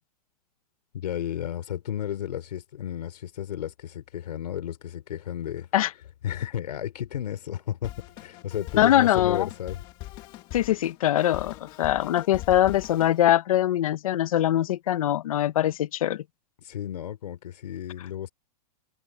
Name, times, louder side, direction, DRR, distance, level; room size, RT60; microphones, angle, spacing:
voice 1, 0.9-5.7 6.2-9.8 16.6-18.3, left 10 dB, 80° left, 3.6 m, -33 dB
Drum kit, 7.8-13.2, left 16 dB, 25° left, 1.8 m, -42 dB
voice 2, 8.8-9.5 10.5-16.2, left 12 dB, 60° left, 0.9 m, -22 dB
supercardioid pair, 180°, 21 cm